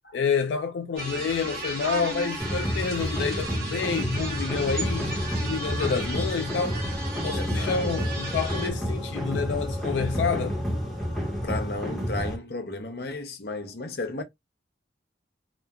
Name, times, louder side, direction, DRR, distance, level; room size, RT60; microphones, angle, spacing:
voice 1, 0.1-6.8 7.2-10.6, left 5 dB, 80° left, 0.3 m, -28 dB
sound 1, 1.0-8.7, right 2 dB, 50° right, 1.0 m, -35 dB
sound 2, 2.4-12.4, equal, ahead, 1.0 m, -30 dB
voice 2, 7.4-7.9 11.4-14.2, left 2 dB, 60° left, 0.7 m, -33 dB
2.9 x 2.3 x 2.2 m
head